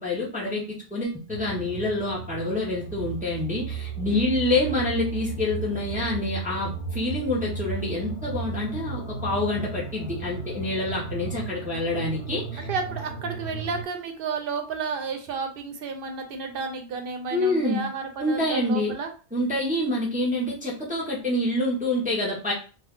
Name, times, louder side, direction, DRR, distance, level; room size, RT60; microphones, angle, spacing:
voice 1, 0.0-12.7 17.3-17.9 18.2-18.9 19.3-22.5, left 2 dB, 10° right, -5 dB, 0.7 m, -27 dB
sound 1, 1.3-13.8, right 4 dB, 70° left, 1.2 m, -35 dB
voice 2, 12.6-19.1, right 4 dB, 65° right, 5 dB, 0.7 m, -32 dB
2.4 x 2.3 x 3.6 m, 0.36 s
omnidirectional pair, 1.1 m